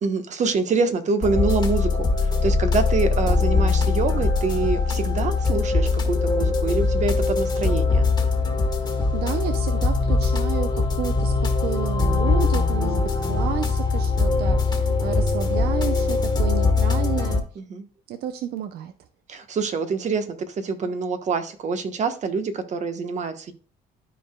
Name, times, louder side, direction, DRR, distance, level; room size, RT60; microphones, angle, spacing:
voice 1, 0.0-8.1 17.5-17.8 19.3-23.5, right 4 dB, 45° right, 1.1 m, -26 dB
sound 1, 1.2-17.4, left 3 dB, 25° left, 1.6 m, -22 dB
voice 2, 8.8-17.4 18.1-18.9, right 9 dB, 70° right, 0.6 m, -31 dB
13.0 x 4.7 x 2.3 m
cardioid pair, 110°, 17 cm